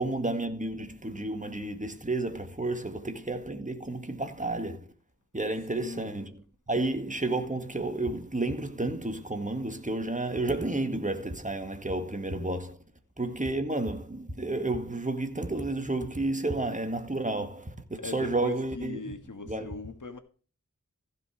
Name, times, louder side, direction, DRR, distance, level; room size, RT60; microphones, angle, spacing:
voice 1, 0.0-4.9 5.3-12.8 13.2-19.1 19.4-19.8, right 2 dB, 25° right, 1.9 m, -31 dB
voice 2, 5.7-6.1 18.0-20.2, left 4 dB, 70° left, 1.6 m, -40 dB
15.0 x 5.5 x 4.8 m
wide cardioid pair, 50°, 32 cm